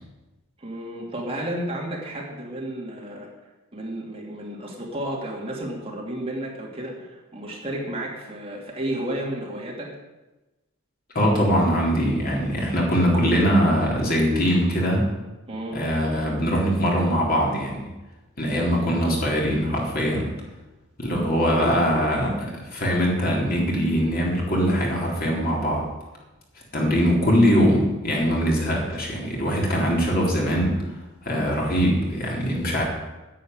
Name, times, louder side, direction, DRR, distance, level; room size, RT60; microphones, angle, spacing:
voice 1, 0.6-3.3 3.7-9.9 15.5-15.8 21.5-21.8 26.8-26.9 28.8-28.9, right 1 dB, 25° right, -2 dB, 2.8 m, -32 dB
voice 2, 11.1-15.1 15.7-17.9 18.4-20.3 21.0-25.9 26.7-31.0 31.2-32.8, equal, 45° left, -2 dB, 3.8 m, -22 dB
10.5 x 8.6 x 9.6 m, 1.1 s
head